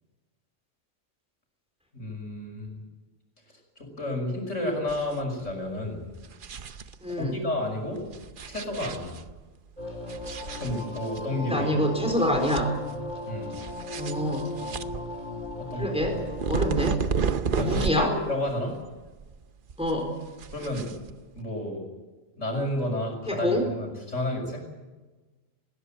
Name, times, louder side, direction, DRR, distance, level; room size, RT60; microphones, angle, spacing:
voice 1, 1.9-2.8 3.8-6.0 7.2-8.0 8.5-9.1 10.6-11.7 13.3-13.5 15.6-15.9 17.5-18.8 20.5-20.9 21.3-21.8 22.4-24.6, left 1 dB, 65° left, 2 dB, 6.1 m, -31 dB
sound 1, 4.9-5.2 5.5-5.6 6.1-7.3 8.1-9.4 10.1-11.2 11.6-11.7 12.1-13.1 13.5-18.2 18.5-19.4 19.7-21.4, right 6 dB, 45° right, 0.9 m, -32 dB
voice 2, 7.0-7.4 11.5-12.7 14.0-14.5 15.8-16.2 16.5-17.0 17.5-18.1 19.8-20.2 23.3-23.7, equal, 5° right, 3 dB, 4.1 m, -26 dB
sound 2, 9.8-16.7, left 1 dB, 35° left, 4.7 m, -37 dB
19.5 x 17.5 x 9.0 m, 1.2 s
omnidirectional pair, 1.3 m